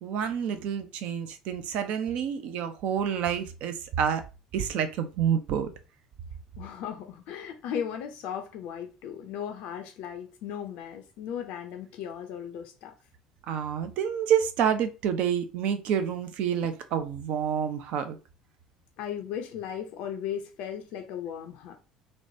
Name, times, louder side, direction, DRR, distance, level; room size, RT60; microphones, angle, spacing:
voice 1, 0.0-4.2 4.5-5.7 13.5-18.2, right 8 dB, 50° right, 0.4 m, -28 dB
voice 2, 6.6-12.9 19.0-21.8, left 8 dB, 55° left, 0.4 m, -36 dB
3.0 x 2.1 x 2.6 m
figure-of-eight pair, 60°, 3 cm